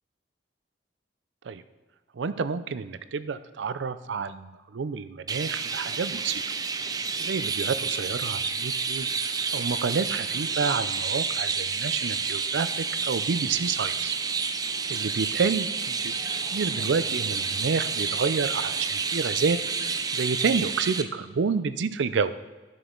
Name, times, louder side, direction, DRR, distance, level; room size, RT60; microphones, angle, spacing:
voice 1, 2.1-6.4 7.2-9.1 9.5-14.2 14.9-16.1 16.5-19.6 20.1-22.3, right 5 dB, 85° right, 13 dB, 0.5 m, -29 dB
Chirp tweet, 5.3-21.0, right 5 dB, 20° right, 0.4 m, -29 dB
11.0 x 6.3 x 3.8 m, 1.3 s
head